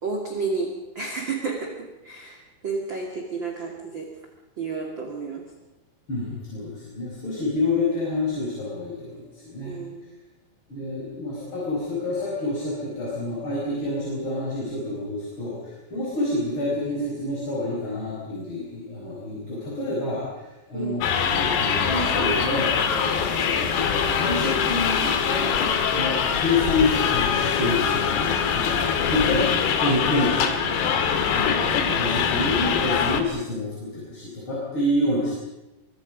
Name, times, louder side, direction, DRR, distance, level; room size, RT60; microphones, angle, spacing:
voice 1, 0.0-4.1 4.6-5.5 9.6-10.3 20.7-21.1 31.6-32.2, right 4 dB, 35° right, 0 dB, 2.6 m, -32 dB
voice 2, 6.1-9.7 10.7-20.4 20.7-21.0 21.4-25.2 25.9-28.7 29.1-30.8 31.3-35.3, left 2 dB, 30° left, -5 dB, 6.0 m, -28 dB
sound 1, 21.0-33.2, left 7 dB, 85° left, 3.9 m, -23 dB
24.5 x 24.5 x 5.2 m, 1.0 s
omnidirectional pair, 4.8 m